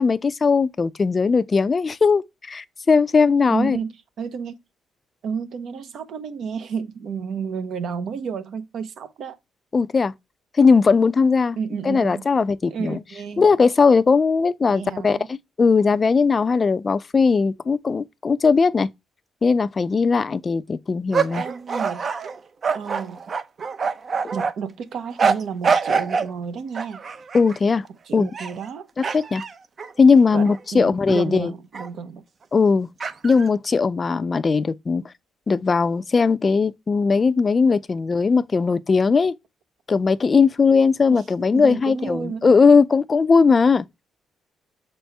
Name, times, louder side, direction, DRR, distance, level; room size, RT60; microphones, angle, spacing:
voice 1, 0.0-3.8 9.7-10.1 10.6-11.6 11.8-13.0 13.4-18.9 19.4-21.4 27.3-27.8 28.1-28.3 29.0-29.4 30.0-31.5 32.5-32.9 33.2-35.0 35.5-39.3 39.9-43.9, left 5 dB, 35° left, 0.4 m, -18 dB
voice 2, 3.5-3.9 4.2-4.5 5.2-9.4 11.6-12.2 12.7-13.5 14.7-15.3 21.3-22.0 22.7-23.2 24.3-27.0 28.1-28.9 30.3-32.2 41.1-41.2 41.5-42.6, right 6 dB, 70° right, 1.0 m, -31 dB
sound 1, 21.1-24.5 25.2-26.3 26.7-27.6 28.2-28.7 29.0-30.6 31.1-31.2 31.7-31.9 33.0-33.5, right 5 dB, 45° right, 0.7 m, -25 dB
6.7 x 4.2 x 3.4 m
cardioid pair, 90°, 0 cm